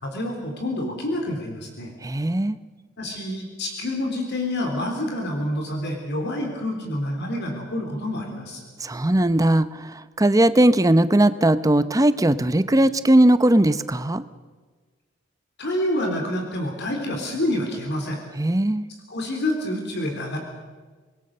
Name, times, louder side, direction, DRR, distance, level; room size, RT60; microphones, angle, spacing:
voice 1, 0.0-1.9 3.0-8.6 15.6-18.2 19.1-20.4, left 1 dB, 55° left, 2 dB, 3.8 m, -27 dB
voice 2, 2.0-2.6 8.8-14.2 18.4-18.8, right 1 dB, 15° right, 13 dB, 0.7 m, -19 dB
26.0 x 21.0 x 6.7 m, 1.4 s
head